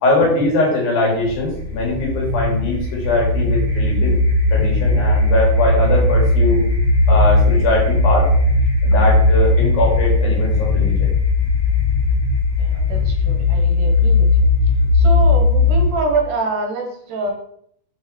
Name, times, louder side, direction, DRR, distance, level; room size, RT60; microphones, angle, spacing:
voice 1, 0.0-4.2 4.5-6.6 7.1-8.3 8.8-11.1, left 2 dB, 75° left, -1 dB, 4.3 m, -20 dB
sound 1, 1.2-16.1, left 2 dB, 35° left, 2.4 m, -17 dB
voice 2, 12.6-14.3 14.9-17.3, right 3 dB, 65° right, 3 dB, 2.5 m, -25 dB
7.5 x 7.2 x 4.4 m, 0.68 s
omnidirectional pair, 4.2 m